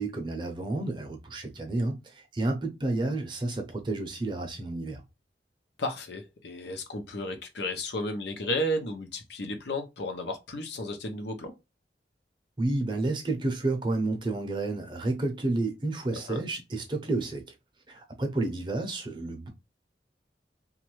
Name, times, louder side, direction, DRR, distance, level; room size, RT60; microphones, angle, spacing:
voice 1, 0.0-5.0 12.6-17.4 17.9-19.5, right 2 dB, 25° right, 0.6 m, -30 dB
voice 2, 5.8-11.5 16.3-16.4, left 1 dB, 80° left, 0.7 m, -33 dB
3.1 x 2.4 x 3.0 m
head